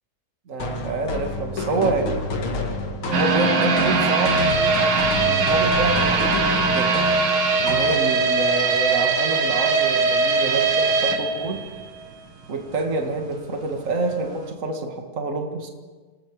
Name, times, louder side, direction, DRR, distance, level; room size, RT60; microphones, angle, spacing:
voice 1, 0.5-2.2 3.0-4.5 5.2-7.0 7.6-11.6 12.5-15.7, right 3 dB, 40° right, 3 dB, 2.3 m, -27 dB
sound 1, 0.6-8.4, left 3 dB, 85° left, 2.8 m, -29 dB
sound 2, 3.1-12.1 12.4-12.5 13.0-13.1, right 4 dB, 85° right, 2.5 m, -21 dB
27.5 x 19.5 x 4.9 m, 1.3 s
omnidirectional pair, 2.2 m